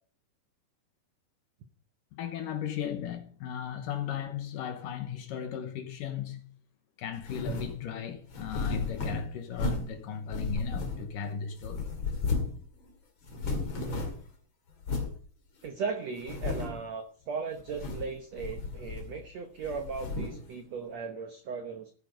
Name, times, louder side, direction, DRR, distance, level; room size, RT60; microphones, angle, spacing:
voice 1, 2.1-6.5 7.0-11.9, left 8 dB, 70° left, 2.4 m, -36 dB
sound 1, 7.2-7.8 8.3-10.0 10.3-11.3 11.6-12.6 12.9-13.0 13.2-14.3 14.8-15.2 15.7-15.8 16.2-16.8 17.6-18.1 18.4-19.3 19.6-20.4, left 3 dB, 40° left, 2.2 m, -34 dB
voice 2, 15.6-21.9, right 5 dB, 85° right, 1.5 m, -37 dB
14.0 x 9.1 x 5.1 m
omnidirectional pair, 4.7 m